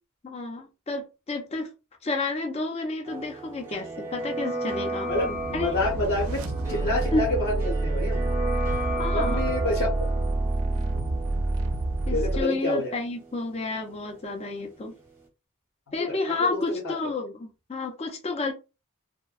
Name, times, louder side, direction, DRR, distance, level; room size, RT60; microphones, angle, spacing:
voice 1, 0.2-1.7 2.0-5.1 5.5-5.8 7.1-7.2 9.0-9.4 12.1-15.0 15.9-18.5, left 3 dB, 30° left, 0.4 m, -30 dB
sound 1, 3.0-14.8 15.0-15.1, right 2 dB, 10° right, 0.7 m, -35 dB
voice 2, 5.1-8.2 9.1-9.9 12.1-13.0 15.9-16.9, left 2 dB, 70° left, 0.9 m, -28 dB
sound 2, 5.1-12.4, right 2 dB, 75° right, 0.4 m, -28 dB
2.6 x 2.1 x 2.3 m
head